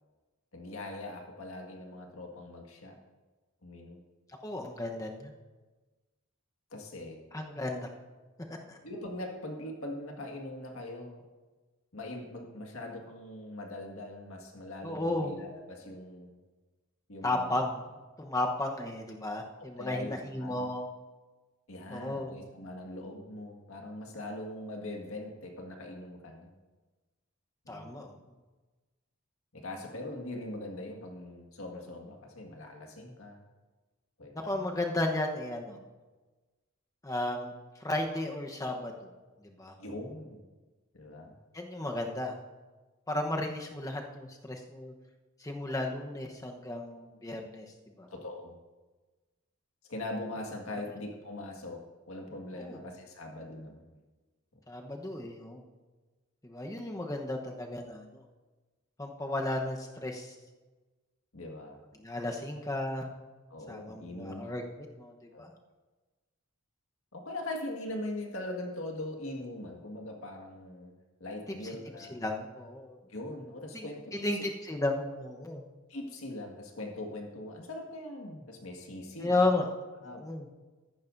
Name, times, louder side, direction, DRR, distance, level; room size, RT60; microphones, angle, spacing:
voice 1, 0.5-3.0 3.6-4.0 6.7-7.2 8.8-11.2 11.9-16.3 17.1-17.6 19.6-20.7 21.7-26.5 27.6-28.0 29.5-33.4 34.2-34.7 39.8-40.4 40.9-41.3 48.1-48.6 49.9-51.8 52.1-53.8 61.3-61.8 63.5-64.6 65.3-65.5 67.1-70.9 71.2-72.2 73.1-74.3 75.9-79.5 80.0-80.2, left 1 dB, 70° left, 1 dB, 1.9 m, -41 dB
voice 2, 4.4-5.3 7.3-7.9 8.7-8.8 14.8-15.4 17.2-17.9 18.2-20.9 21.9-22.3 27.7-28.2 34.3-35.8 37.0-37.5 37.8-39.1 39.4-39.7 41.5-42.4 43.1-44.9 45.4-47.7 48.0-48.1 52.5-52.8 54.7-55.6 56.4-58.2 59.0-60.3 62.0-63.1 63.7-64.6 65.0-65.5 71.6-71.8 72.1-73.0 73.7-75.6 79.2-79.6 80.0-80.5, left 2 dB, 15° left, 2 dB, 1.0 m, -34 dB
14.0 x 11.5 x 2.7 m, 1.3 s
head